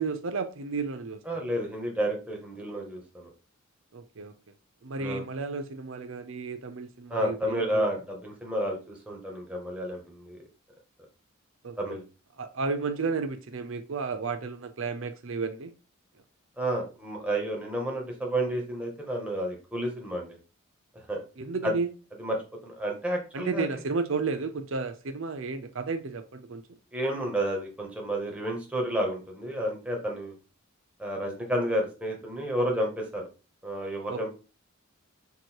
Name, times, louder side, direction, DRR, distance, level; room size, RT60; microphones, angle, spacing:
voice 1, 0.0-1.2 3.9-4.3 4.8-7.8 11.6-11.8 12.4-15.7 21.4-21.9 23.3-26.6 34.1-34.3, right 4 dB, 70° right, 0.6 m, -32 dB
voice 2, 1.3-3.3 5.0-5.2 7.1-10.4 11.8-12.0 16.6-20.4 21.1-21.2 21.6-21.7 22.2-23.8 26.9-30.3 31.0-33.2 33.6-34.3, right 1 dB, 5° right, 1.6 m, -31 dB
6.8 x 3.1 x 4.5 m
head